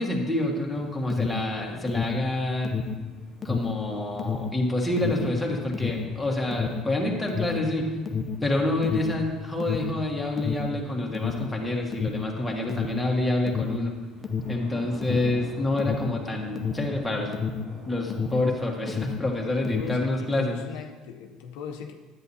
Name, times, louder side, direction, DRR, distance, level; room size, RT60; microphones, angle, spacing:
voice 1, 0.0-2.8 3.4-7.9 8.4-13.9 14.5-17.3 17.9-20.6, left 2 dB, 5° left, 1.5 m, -27 dB
Thunder with rain, 0.7-20.3, equal, 50° right, 3.0 m, -48 dB
Alarm, 0.8-18.6 18.8-20.1, left 6 dB, 25° left, 0.6 m, -31 dB
voice 2, 19.6-21.9, left 7 dB, 85° left, 0.6 m, -38 dB
10.5 x 8.4 x 2.8 m
supercardioid pair, 105°, 0 cm